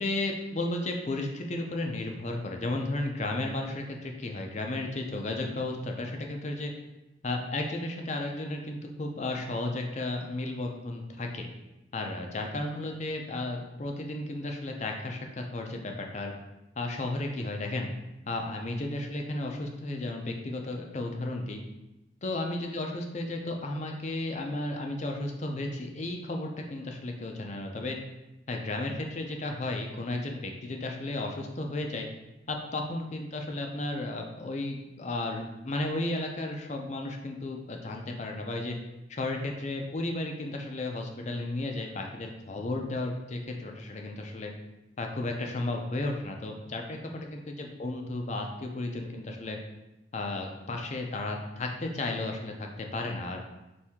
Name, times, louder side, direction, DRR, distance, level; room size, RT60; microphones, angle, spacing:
voice 1, 0.0-6.7 7.2-11.5 11.9-16.3 16.8-17.9 18.3-21.6 22.2-28.0 28.5-32.1 32.5-38.8 39.1-44.5 45.0-49.6 50.1-53.4, left 2 dB, 40° left, 2 dB, 0.5 m, -34 dB
4.3 x 2.7 x 3.5 m, 0.97 s
head